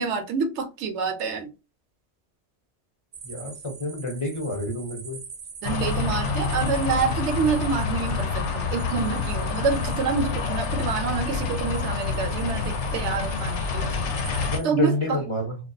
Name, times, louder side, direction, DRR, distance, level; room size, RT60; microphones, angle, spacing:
voice 1, 0.0-1.5 5.6-14.1 14.6-15.2, right 5 dB, 90° right, 0.9 m, -27 dB
sound 1, 3.1-14.7, right 5 dB, 55° right, 0.5 m, -43 dB
voice 2, 3.2-5.2 14.5-15.6, left 1 dB, 35° left, 0.6 m, -28 dB
sound 2, 5.6-14.6, left 4 dB, 90° left, 0.9 m, -27 dB
2.3 x 2.2 x 2.5 m
omnidirectional pair, 1.2 m